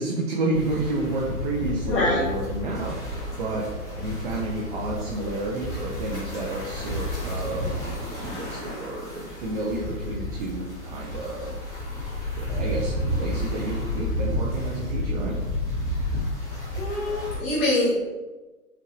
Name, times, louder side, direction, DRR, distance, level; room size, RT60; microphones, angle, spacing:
voice 1, 0.0-3.7 4.0-11.8 12.4-15.4, right 2 dB, 35° right, -3 dB, 0.5 m, -31 dB
sound 1, 0.5-17.4, left 1 dB, 5° left, 0.8 m, -31 dB
voice 2, 1.9-2.2 16.7-18.0, left 1 dB, 35° left, -9 dB, 1.4 m, -24 dB
5.7 x 2.6 x 3.1 m, 1.2 s
hypercardioid pair, 145°, 46 cm